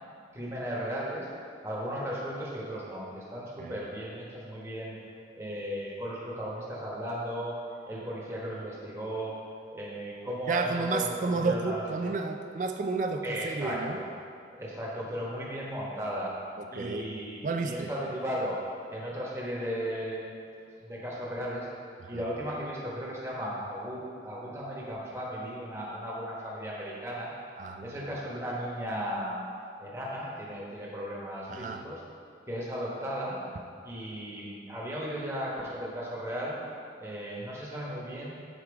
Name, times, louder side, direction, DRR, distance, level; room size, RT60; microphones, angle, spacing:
voice 1, 0.3-1.3 1.6-5.0 5.3-7.5 7.9-9.3 9.7-11.1 11.4-11.8 13.2-14.1 14.5-16.3 16.7-18.6 18.9-20.3 20.8-27.3 27.8-29.4 29.8-32.0 32.5-33.4 33.8-36.5 37.0-38.3, equal, 15° right, -5 dB, 1.2 m, -36 dB
voice 2, 10.5-14.0 16.6-17.1 17.4-17.9 22.0-22.1 27.6-27.9 31.5-31.8, right 3 dB, 45° right, 5 dB, 0.3 m, -31 dB
6.9 x 4.6 x 4.8 m, 2.4 s
head